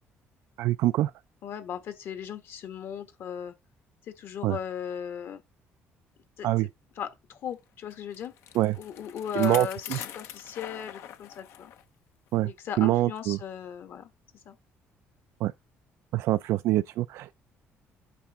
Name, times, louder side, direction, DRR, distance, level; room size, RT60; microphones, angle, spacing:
voice 1, 0.6-1.1 4.4-4.6 6.4-6.7 8.6-8.8 9.4-10.0 12.3-12.5 12.8-13.4 15.4-15.5 16.1-17.3, right 15 dB, 80° right, 0.3 m, -25 dB
voice 2, 1.4-3.5 4.1-5.4 6.4-6.7 6.9-8.3 8.8-11.7 12.4-14.1 14.4-14.6, left 8 dB, 60° left, 1.5 m, -37 dB
Bicycle, 7.9-11.8 12.3-12.4 13.2-13.3, left 10 dB, 75° left, 0.9 m, -43 dB
8.5 x 6.0 x 3.6 m
cardioid pair, 145°, 5 cm